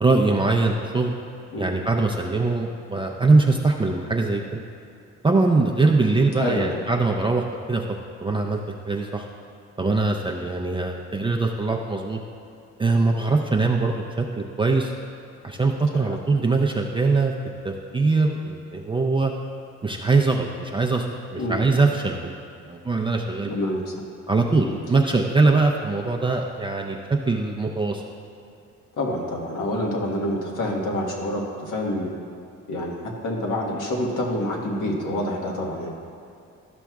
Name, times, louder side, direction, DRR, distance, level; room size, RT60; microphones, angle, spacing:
voice 1, 0.0-1.1 1.6-4.6 5.2-7.8 8.2-8.6 8.9-9.3 9.8-12.2 12.8-14.9 15.4-17.3 17.6-19.3 19.8-21.1 21.3-22.4 22.7-23.5 24.3-28.0, right 3 dB, 15° right, 0 dB, 0.4 m, -22 dB
voice 2, 6.4-6.8 15.9-16.2 21.4-21.6 23.5-23.9 24.6-24.8 29.0-32.1 32.7-35.9, left 1 dB, 80° left, -1 dB, 1.4 m, -27 dB
12.5 x 6.0 x 2.3 m, 2.6 s
cardioid pair, 90°, 30 cm